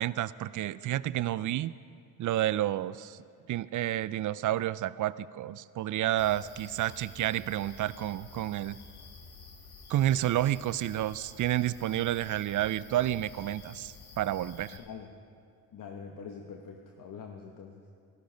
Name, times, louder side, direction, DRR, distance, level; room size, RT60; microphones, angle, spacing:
voice 1, 0.0-1.7 2.2-3.2 3.5-8.8 9.9-14.8, right 13 dB, 50° right, 18 dB, 0.4 m, -30 dB
sound 1, 6.2-14.8, left 4 dB, 70° left, 1.9 m, -50 dB
voice 2, 14.8-15.1 15.7-17.8, left 6 dB, 55° left, 3 dB, 1.1 m, -44 dB
14.0 x 13.0 x 5.2 m, 2.3 s
supercardioid pair, 65°, 39 cm